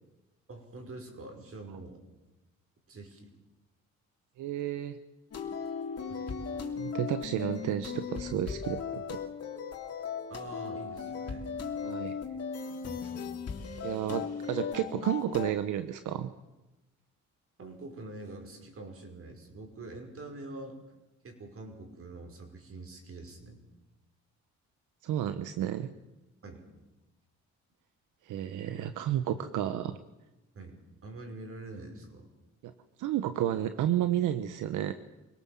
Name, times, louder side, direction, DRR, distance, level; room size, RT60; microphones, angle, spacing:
voice 1, 0.5-2.0 2.9-3.3 6.0-6.3 10.3-11.5 17.6-20.8 21.2-23.6 26.4-26.6 30.5-32.3, right 2 dB, 50° right, 4 dB, 5.6 m, -45 dB
voice 2, 4.4-5.0 6.8-9.2 11.8-12.2 13.8-16.3 25.0-25.9 28.2-30.0 32.6-32.7 33.0-34.9, right 11 dB, 85° right, 10 dB, 1.1 m, -31 dB
sound 1, 5.3-15.5, left 6 dB, 55° left, 3.0 m, -37 dB
25.0 x 18.0 x 7.5 m, 1.0 s
cardioid pair, 90°, 30 cm